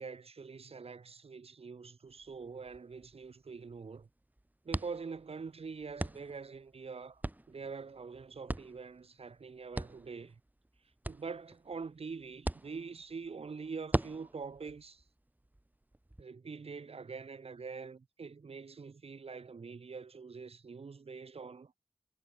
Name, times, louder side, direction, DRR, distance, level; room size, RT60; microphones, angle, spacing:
voice 1, 0.0-4.1 4.6-7.2 7.5-10.4 11.1-15.0 16.2-21.7, right 5 dB, 70° right, 0.5 m, -44 dB
sound 1, 2.1-16.2, right 1 dB, 15° right, 0.7 m, -43 dB
wide cardioid pair, 50°, 11 cm